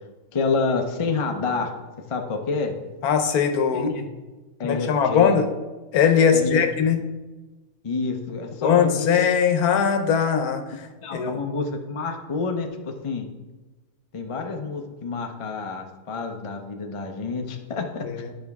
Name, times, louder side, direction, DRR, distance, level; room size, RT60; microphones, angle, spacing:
voice 1, 0.3-1.7 2.1-2.7 3.7-4.0 4.6-5.3 6.3-6.6 7.8-9.3 11.0-13.3 14.1-18.1, left 4 dB, 40° left, 4 dB, 0.5 m, -28 dB
voice 2, 3.0-3.9 4.6-5.5 5.9-7.0 8.6-10.9 11.1-11.4 18.2-18.3, left 7 dB, 80° left, 7 dB, 1.2 m, -20 dB
11.0 x 5.1 x 3.5 m, 1.2 s
omnidirectional pair, 1.6 m